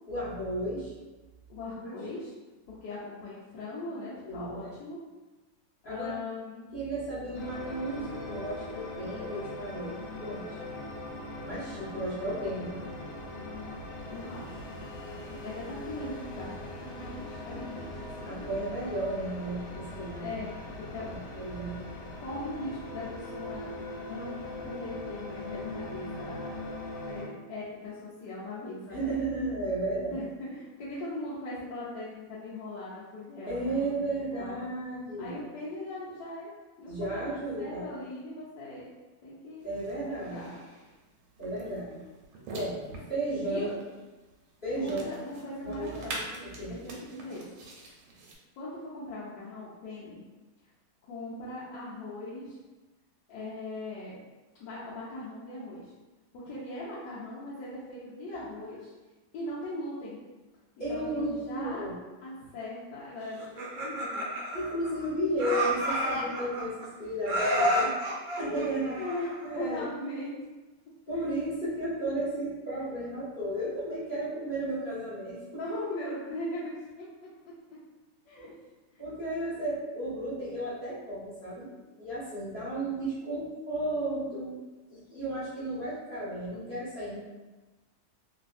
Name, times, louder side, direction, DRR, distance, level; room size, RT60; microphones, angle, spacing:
voice 1, 0.1-0.9 4.2-4.7 5.8-6.1 6.7-10.6 11.4-12.8 18.2-20.4 21.1-21.8 28.9-30.2 30.8-30.9 33.5-35.4 36.9-37.9 39.6-40.5 41.4-42.0 42.5-42.8 43.1-43.7 44.6-45.1 45.6-46.1 46.4-46.7 58.3-58.5 60.8-61.9 64.5-67.9 68.4-69.1 69.4-69.9 71.1-75.6 79.0-84.6 84.9-87.2, right 1 dB, 30° left, -12 dB, 1.0 m, -34 dB
voice 2, 1.5-2.3 2.7-5.0 5.8-6.7 14.1-14.6 15.4-16.5 16.8-18.6 20.2-20.6 20.9-21.4 22.2-23.7 24.1-24.3 24.6-26.5 27.1-29.1 29.9-34.6 35.2-36.5 36.8-38.9 39.2-39.7 40.0-40.6 43.4-43.7 44.7-47.5 48.6-50.2 51.0-52.6 53.3-54.2 54.6-55.9 56.3-58.9 59.3-60.2 60.9-61.8 62.2-64.3 68.4-70.3 75.6-76.6 77.0-77.1 78.3-78.5 78.9-79.1, left 1 dB, 70° left, -9 dB, 1.1 m, -39 dB
sound 1, 7.3-27.3, left 1 dB, 85° left, 1.5 m, -40 dB
sound 2, 39.6-48.4, right 2 dB, 90° right, 1.5 m, -45 dB
Laughter, 63.4-65.1 65.4-66.9 67.2-69.5, equal, 65° right, 0.9 m, -30 dB
3.2 x 2.7 x 2.5 m, 1.2 s
omnidirectional pair, 2.2 m